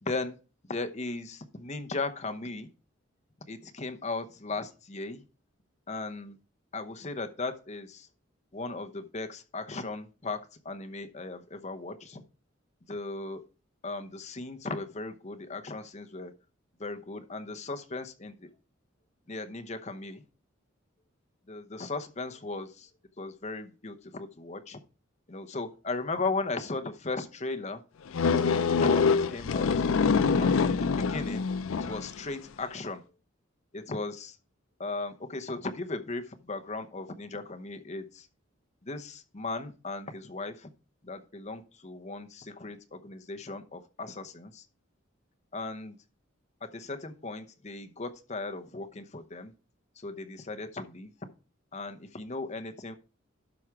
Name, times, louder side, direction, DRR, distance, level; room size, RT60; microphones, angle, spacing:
voice 1, 0.0-0.4 0.7-2.7 3.5-5.2 5.9-6.4 6.7-8.1 8.5-10.4 10.6-12.2 12.9-13.4 13.8-16.3 16.8-18.3 19.3-20.2 21.5-22.9 23.2-24.8 25.3-27.8 28.4-29.9 30.4-31.4 31.8-33.0 33.7-34.4 34.8-38.3 38.8-40.7 41.0-44.6 45.5-46.0 46.6-49.5 50.0-51.1 51.7-52.9, left 3 dB, 35° left, 7 dB, 0.9 m, -37 dB
sound 1, 28.1-32.2, left 5 dB, 80° left, 0.4 m, -25 dB
12.0 x 4.9 x 4.6 m, 0.34 s
head